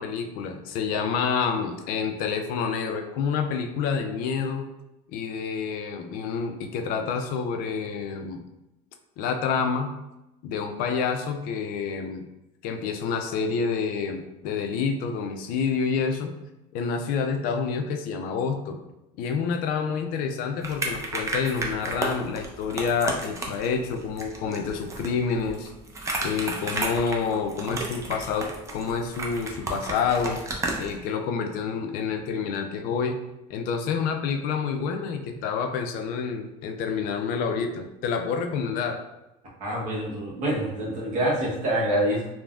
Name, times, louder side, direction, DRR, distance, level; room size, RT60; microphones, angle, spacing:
voice 1, 0.0-4.7 5.1-8.4 9.2-9.9 10.4-12.2 12.6-16.3 16.7-18.8 19.2-25.7 26.2-30.4 30.8-33.2 33.5-39.0, left 6 dB, 65° left, 5 dB, 0.4 m, -28 dB
sound 1, 20.6-31.0, right 2 dB, 20° right, 0.5 m, -33 dB
voice 2, 39.6-42.3, right 1 dB, 55° right, -4 dB, 1.1 m, -26 dB
3.3 x 2.1 x 2.4 m, 0.91 s
cardioid pair, 125°, 16 cm